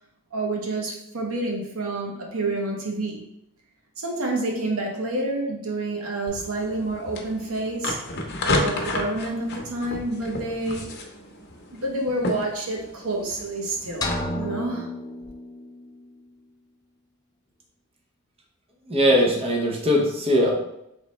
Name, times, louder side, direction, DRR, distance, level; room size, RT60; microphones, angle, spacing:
voice 1, 0.3-3.2 4.0-8.0 8.4-10.9 11.7-14.9, right 2 dB, 85° right, 0 dB, 1.0 m, -28 dB
sound 1, 6.3-14.2, left 2 dB, 50° left, 0.7 m, -32 dB
sound 2, 14.0-15.9, left 1 dB, 20° left, 0.4 m, -31 dB
voice 2, 18.9-20.5, equal, 30° right, -2 dB, 0.7 m, -20 dB
3.3 x 3.2 x 4.1 m, 0.81 s
head